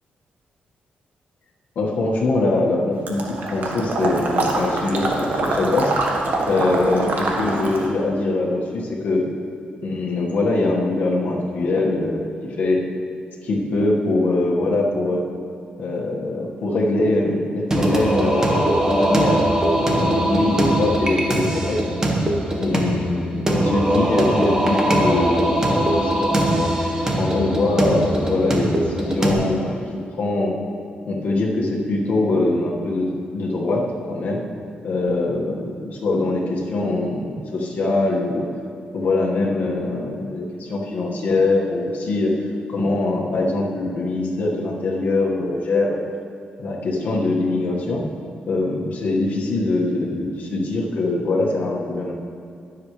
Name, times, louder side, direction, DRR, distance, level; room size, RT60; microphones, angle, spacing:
voice 1, 1.7-5.9 6.5-9.3 9.8-12.8 13.4-15.3 15.8-19.4 19.7-21.8 22.6-26.7 27.1-29.8 30.1-30.5 31.0-34.4 34.8-38.5 38.9-42.3 42.7-46.0 46.6-48.0 48.5-52.1, left 2 dB, 60° left, -1 dB, 1.6 m, -22 dB
Water / Liquid, 3.1-7.9, right 2 dB, 60° right, 1.4 m, -24 dB
Singing, 17.7-29.3, right 1 dB, 20° right, 1.3 m, -21 dB
20.0 x 7.4 x 3.2 m, 2.3 s
wide cardioid pair, 150°, 3 cm